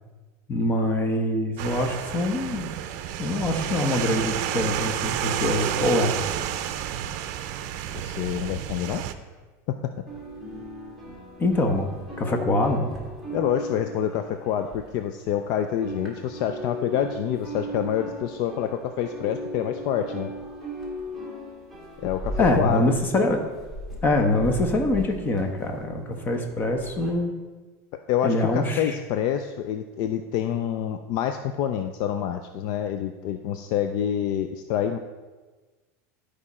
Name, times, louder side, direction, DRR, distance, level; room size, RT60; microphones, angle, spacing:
voice 1, 0.5-2.7 3.2-6.2 11.4-11.9 12.2-12.9 22.4-23.5 24.0-27.4 28.2-29.0, left 1 dB, 20° left, 5 dB, 1.0 m, -24 dB
sound 1, 1.6-9.1, right 10 dB, 55° right, 0.6 m, -30 dB
voice 2, 7.9-9.0 9.7-9.9 13.3-20.3 22.0-22.9 28.1-35.0, left 10 dB, 50° left, 7 dB, 0.4 m, -27 dB
sound 2, 10.1-15.4 15.7-27.1, equal, ahead, 2.0 m, -37 dB
12.0 x 5.0 x 4.2 m, 1.3 s
supercardioid pair, 140°, 9 cm